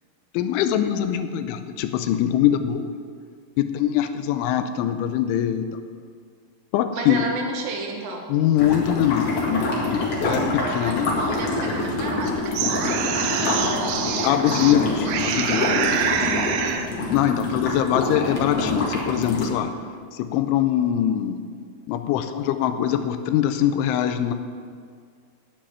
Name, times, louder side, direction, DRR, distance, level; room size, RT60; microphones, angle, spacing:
voice 1, 0.3-2.9 3.6-5.7 6.7-7.3 8.3-9.7 9.9-11.1 14.2-16.1 17.1-19.7 20.1-21.4 21.9-24.3, left 10 dB, 85° left, 9 dB, 3.0 m, -23 dB
voice 2, 6.9-8.3 10.8-14.5 16.1-16.9, right 3 dB, 65° right, 2 dB, 2.4 m, -33 dB
sound 1, 8.6-19.5, left 2 dB, 45° left, 2.1 m, -26 dB
sound 2, 12.3-14.8 15.1-16.9, right 7 dB, 85° right, 3.3 m, -26 dB
10.0 x 8.6 x 8.8 m, 2.1 s
omnidirectional pair, 5.6 m